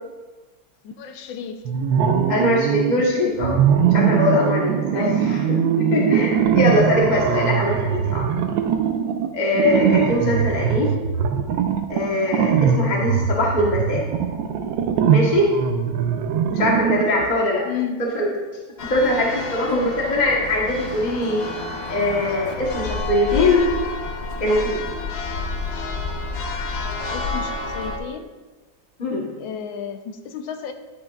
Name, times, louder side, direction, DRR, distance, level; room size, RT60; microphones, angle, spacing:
voice 1, 0.8-1.7 4.9-5.3 10.7-10.8 17.6-18.1 19.7-19.9 27.1-28.3 29.4-30.7, left 7 dB, 90° left, 7 dB, 1.5 m, -32 dB
sound 1, 1.7-3.0 3.4-17.3, right 7 dB, 75° right, 1.3 m, -21 dB
voice 2, 2.3-3.6 3.9-5.4 5.8-8.3 9.3-10.9 11.9-14.0 15.1-15.5 16.5-17.6 18.0-18.3 18.9-21.4 21.9-23.7 24.4-24.8 29.0-29.3, left 1 dB, 30° left, -3 dB, 1.0 m, -21 dB
Church bell, 18.8-28.0, left 3 dB, 50° left, 0.7 m, -29 dB
11.5 x 8.6 x 2.4 m, 1.3 s
omnidirectional pair, 2.1 m